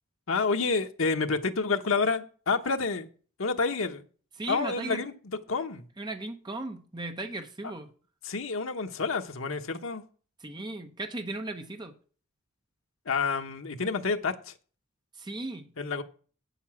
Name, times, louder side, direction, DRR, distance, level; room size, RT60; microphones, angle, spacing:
voice 1, 0.3-3.1 3.4-4.0 4.5-5.1 5.5-5.9 7.6-7.7 8.2-10.0 13.1-14.5 15.8-16.0, left 4 dB, 75° left, 1.0 m, -29 dB
voice 2, 4.4-5.0 6.0-7.9 10.4-12.0 15.1-15.7, right 2 dB, 20° right, 0.8 m, -37 dB
8.5 x 7.0 x 5.9 m
head